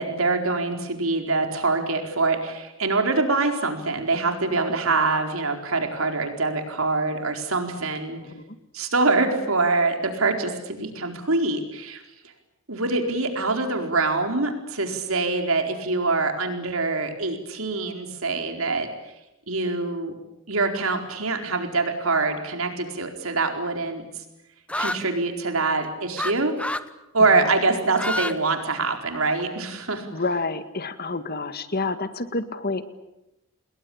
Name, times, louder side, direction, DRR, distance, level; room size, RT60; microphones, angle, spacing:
voice 1, 0.0-8.2 8.7-12.0 12.7-18.9 19.5-20.1 20.5-24.0 24.8-26.5 27.1-30.1, right 3 dB, 85° right, 4 dB, 4.5 m, -24 dB
voice 2, 8.1-8.6 27.3-27.6 30.1-32.8, left 3 dB, 50° left, 11 dB, 1.9 m, -29 dB
sound 1, 24.7-25.0 26.2-26.3 26.6-26.9 27.8-28.3 28.7-29.4, left 1 dB, 5° left, 1.0 m, -28 dB
28.5 x 21.5 x 8.7 m, 0.95 s
head